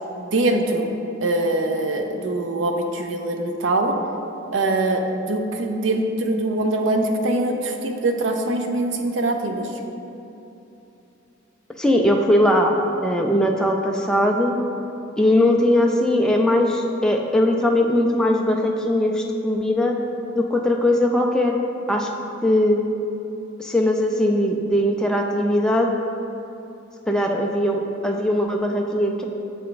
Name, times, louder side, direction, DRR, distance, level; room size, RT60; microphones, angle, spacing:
voice 1, 0.2-0.9 1.2-3.9 4.5-9.7, right 2 dB, 65° right, 4 dB, 0.5 m, -23 dB
voice 2, 11.8-12.7 13.0-14.6 15.2-19.9 20.3-21.6 21.9-22.1 22.4-22.8 23.6-25.9 27.1-29.2, left 1 dB, 5° left, 1 dB, 0.3 m, -20 dB
7.4 x 3.4 x 3.8 m, 2.9 s
head